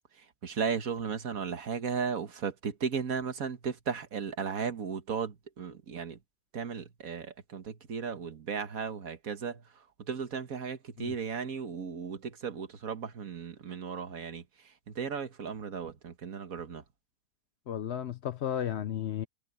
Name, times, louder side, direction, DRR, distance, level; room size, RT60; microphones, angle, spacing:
voice 1, 0.1-6.2 6.5-16.8, right 6 dB, 65° right, 1.8 m, -36 dB
voice 2, 17.7-19.3, left 10 dB, 60° left, 0.7 m, -33 dB
omnidirectional pair, 1.6 m